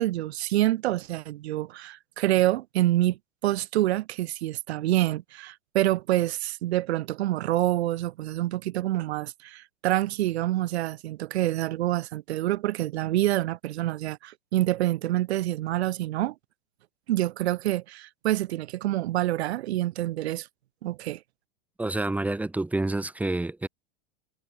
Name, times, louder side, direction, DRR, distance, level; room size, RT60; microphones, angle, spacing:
voice 1, 0.0-3.2 3.4-16.3 17.1-20.5 20.8-21.2, right 15 dB, 80° right, 1.7 m, -27 dB
voice 2, 21.8-23.7, right 2 dB, 5° right, 1.2 m, -28 dB
supercardioid pair, 150°, 32 cm